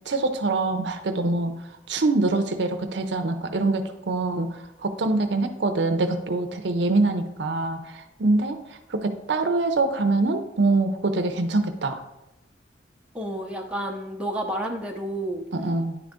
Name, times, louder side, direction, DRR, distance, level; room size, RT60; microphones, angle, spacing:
voice 1, 0.1-1.5 1.9-8.6 8.9-12.0 15.5-16.0, right 2 dB, 70° right, 7 dB, 0.6 m, -24 dB
voice 2, 13.1-15.4, right 1 dB, 5° right, 0 dB, 0.6 m, -30 dB
9.8 x 3.8 x 3.6 m, 0.93 s
head